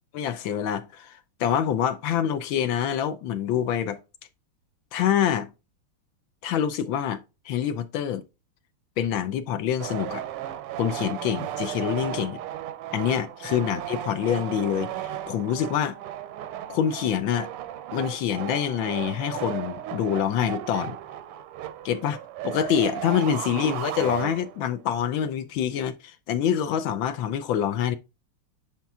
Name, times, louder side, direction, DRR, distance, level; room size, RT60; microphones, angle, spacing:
voice 1, 0.1-4.0 4.9-5.5 6.4-8.2 9.0-10.2 10.8-12.4 12.9-14.9 15.3-16.0 16.7-17.5 17.9-21.0 21.8-22.2 22.4-28.0, left 9 dB, 75° left, 1.3 m, -26 dB
sound 1, 9.8-24.8, right 12 dB, 90° right, 1.6 m, -35 dB
10.5 x 4.4 x 2.3 m
omnidirectional pair, 2.4 m